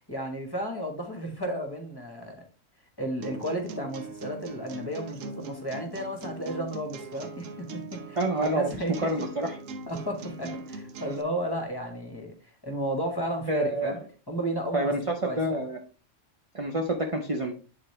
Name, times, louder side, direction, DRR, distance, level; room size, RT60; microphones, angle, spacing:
voice 1, 0.1-2.4 3.0-9.0 9.9-12.3 12.6-14.0 14.3-15.6, equal, 20° left, 3 dB, 1.3 m, -33 dB
sound 1, 3.2-11.2, right 3 dB, 85° right, 1.1 m, -41 dB
voice 2, 8.2-9.6 13.5-13.9 14.7-15.8 16.5-17.5, right 1 dB, 35° right, 3 dB, 0.6 m, -28 dB
8.9 x 4.0 x 3.2 m, 0.37 s
omnidirectional pair, 1.3 m